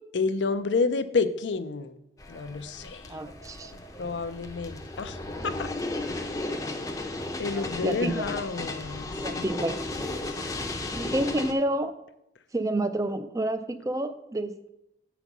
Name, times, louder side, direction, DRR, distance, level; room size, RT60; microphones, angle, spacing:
voice 1, 0.1-2.0 2.3-3.2 3.7-5.2 5.4-5.7 7.4-9.5 10.3-10.5, left 4 dB, 80° left, 12 dB, 0.5 m, -30 dB
sound 1, 2.2-11.5, left 2 dB, 20° left, 0.6 m, -35 dB
voice 2, 3.1-3.7 7.5-8.2 9.2-9.8 10.9-12.0 12.5-14.7, right 1 dB, 20° right, 11 dB, 0.4 m, -29 dB
8.0 x 4.1 x 6.0 m, 0.85 s
head